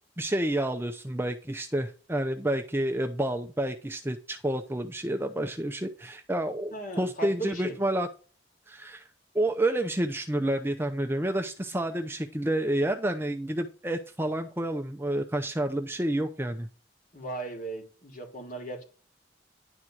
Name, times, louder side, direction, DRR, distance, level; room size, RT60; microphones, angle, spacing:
voice 1, 0.2-8.1 8.7-9.0 9.3-16.7, right 1 dB, 10° right, 0.6 m, -29 dB
voice 2, 6.7-7.8 17.1-18.8, right 2 dB, 45° left, 3.0 m, -37 dB
11.0 x 4.4 x 6.2 m
head